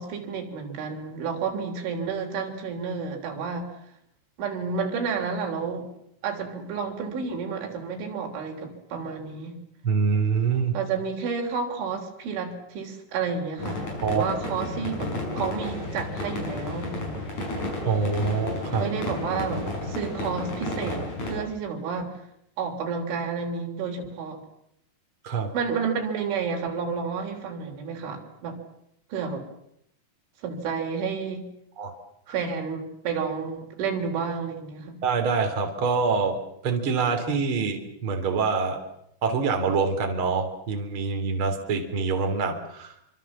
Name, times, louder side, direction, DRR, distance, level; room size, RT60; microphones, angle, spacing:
voice 1, 0.0-3.7 4.4-5.9 6.2-9.6 10.7-17.0 18.8-22.2 22.6-24.4 25.5-28.6 29.1-29.4 30.4-31.5 32.3-35.0, right 5 dB, 85° right, 3 dB, 6.0 m, -30 dB
voice 2, 9.8-10.8 14.0-14.3 17.8-18.8 25.2-25.5 31.8-31.9 35.0-36.4 36.6-38.8 39.2-42.9, right 5 dB, 30° right, 4 dB, 3.4 m, -25 dB
sound 1, 13.6-21.4, left 2 dB, 40° left, 7.0 m, -32 dB
27.5 x 25.0 x 7.4 m, 0.77 s
omnidirectional pair, 5.4 m